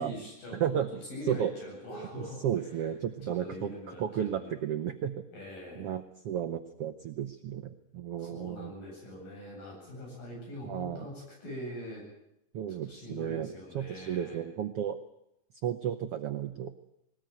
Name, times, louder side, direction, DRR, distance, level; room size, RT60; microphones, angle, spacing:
voice 1, 0.0-0.8 1.1-2.4 3.2-4.6 5.3-5.9 8.2-12.0 12.8-14.4, left 1 dB, 70° left, 0 dB, 9.8 m, -43 dB
voice 2, 0.5-1.0 1.3-1.5 1.9-5.2 5.8-8.7 10.6-11.1 12.5-15.0 15.6-16.7, right 9 dB, 85° right, 9 dB, 1.3 m, -33 dB
20.5 x 19.5 x 9.2 m, 0.81 s
omnidirectional pair, 4.0 m